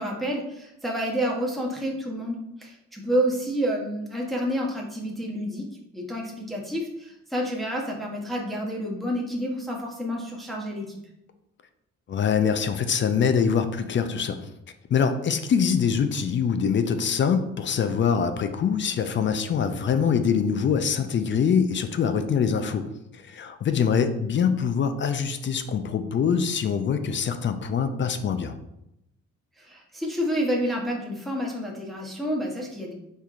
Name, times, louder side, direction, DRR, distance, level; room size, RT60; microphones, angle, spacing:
voice 1, 0.0-5.6 5.9-11.0 29.6-32.9, equal, ahead, -3 dB, 0.8 m, -29 dB
voice 2, 12.1-14.5 14.9-28.5, left 7 dB, 40° left, 9 dB, 0.4 m, -24 dB
4.5 x 3.5 x 2.5 m, 0.84 s
cardioid pair, 90°, 30 cm